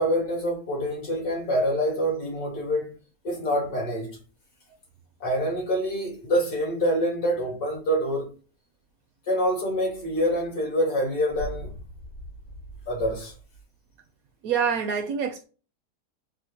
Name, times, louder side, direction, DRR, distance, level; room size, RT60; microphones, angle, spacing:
voice 1, 0.0-2.9 3.2-4.2 5.2-8.3 9.3-11.8 12.9-13.3, equal, 70° left, 2.2 m, -26 dB
voice 2, 14.4-15.4, right 7 dB, 70° right, 1.0 m, -26 dB
4.2 x 2.1 x 2.7 m
omnidirectional pair, 1.7 m